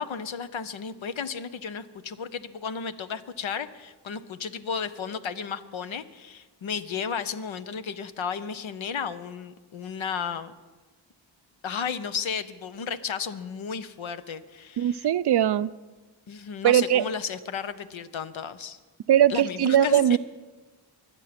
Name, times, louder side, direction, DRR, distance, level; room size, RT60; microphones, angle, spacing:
voice 1, 0.0-10.5 11.6-15.1 16.3-18.8 19.3-20.0, left 6 dB, 80° left, 12 dB, 0.9 m, -33 dB
voice 2, 14.8-15.7 16.6-17.0 19.1-20.2, right 10 dB, 60° right, 15 dB, 0.5 m, -20 dB
24.0 x 8.3 x 5.9 m, 1.3 s
cardioid pair, 60°, 47 cm